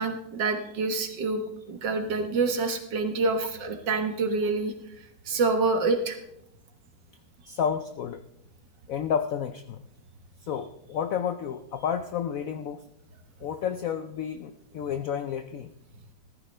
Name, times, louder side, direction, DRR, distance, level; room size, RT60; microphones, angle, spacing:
voice 1, 0.0-1.4 1.7-4.7 5.3-6.2, right 3 dB, 65° right, 6 dB, 1.9 m, -27 dB
voice 2, 7.5-8.2 8.9-9.8 10.4-12.8 13.4-15.7, left 8 dB, 80° left, 10 dB, 0.7 m, -31 dB
15.0 x 13.5 x 3.3 m, 0.78 s
omnidirectional pair, 2.1 m